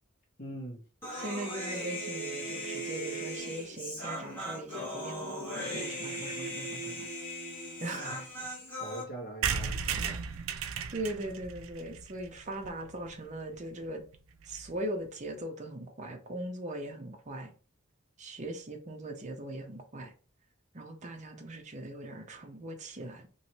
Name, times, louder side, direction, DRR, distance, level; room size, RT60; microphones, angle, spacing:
voice 1, 0.4-0.8 8.1-8.2 8.8-10.2, right 1 dB, 50° left, 1.3 m, -42 dB
Human voice, 1.0-9.0, equal, 10° left, 1.4 m, -38 dB
voice 2, 1.1-7.1 7.8-8.3 10.9-14.0 14.5-17.5 18.2-20.1 20.7-23.3, right 1 dB, 35° right, 0.7 m, -40 dB
sound 1, 9.4-13.1 13.5-13.6 13.8-13.9 14.1-14.2 14.4-14.7, right 6 dB, 75° right, 0.4 m, -35 dB
3.1 x 3.0 x 2.8 m
head